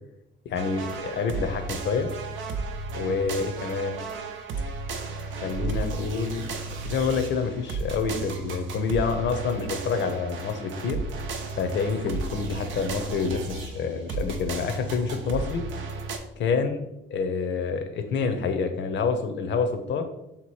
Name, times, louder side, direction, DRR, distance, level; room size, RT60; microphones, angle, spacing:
voice 1, 0.5-2.1 2.9-4.0 5.4-11.0 11.6-15.6 16.4-16.8 17.1-20.0, left 5 dB, 65° left, 7 dB, 0.7 m, -27 dB
sound 1, 0.5-16.2, right 3 dB, 80° right, 0.6 m, -34 dB
3.6 x 3.0 x 4.6 m, 0.88 s
cardioid pair, 90°, 20 cm